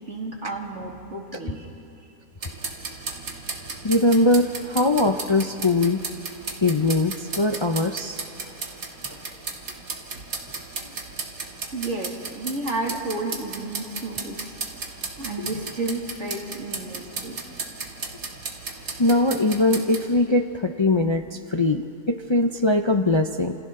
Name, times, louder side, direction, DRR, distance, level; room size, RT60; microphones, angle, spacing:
voice 1, 0.0-1.7 2.0-2.1 3.4-3.7 11.7-14.5 15.2-17.4, right 2 dB, 55° right, 0 dB, 2.8 m, -32 dB
sound 1, 2.4-20.1, right 4 dB, 70° right, 2.2 m, -35 dB
voice 2, 3.8-6.0 6.6-8.2 10.8-10.9 15.4-15.5 19.0-23.6, left 2 dB, 35° left, 5 dB, 0.4 m, -21 dB
29.5 x 28.0 x 3.8 m, 2.6 s
omnidirectional pair, 1.5 m